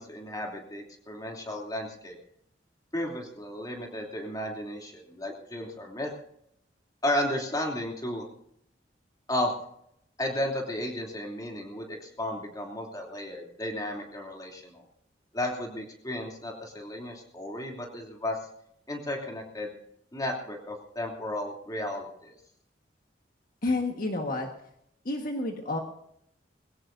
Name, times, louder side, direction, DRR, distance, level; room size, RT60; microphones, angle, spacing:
voice 1, 0.0-2.2 2.9-6.1 7.0-8.2 9.3-9.5 10.2-14.9 15.3-18.4 18.9-19.7 20.1-22.3, left 1 dB, 20° left, 0 dB, 2.9 m, -33 dB
voice 2, 23.6-24.5 25.0-25.8, left 2 dB, 50° left, 3 dB, 1.5 m, -29 dB
21.5 x 17.0 x 2.7 m, 0.73 s
head